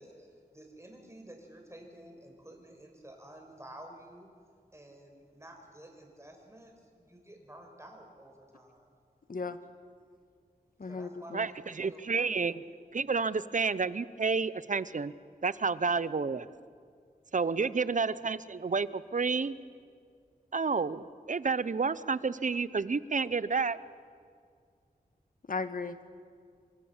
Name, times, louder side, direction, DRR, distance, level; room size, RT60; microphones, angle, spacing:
voice 1, 0.0-4.3 4.7-8.9 10.8-11.3 11.6-12.5 15.9-16.3 17.5-17.8, right 1 dB, 15° right, 2 dB, 5.6 m, -52 dB
voice 2, 10.8-11.5 25.5-26.1, left 4 dB, 60° left, 10 dB, 1.6 m, -36 dB
voice 3, 11.8-12.6 12.9-15.1 15.4-16.5 17.3-19.6 20.5-23.8, right 4 dB, 55° right, 16 dB, 0.8 m, -30 dB
27.5 x 24.5 x 7.4 m, 2.2 s
wide cardioid pair, 75°, 16 cm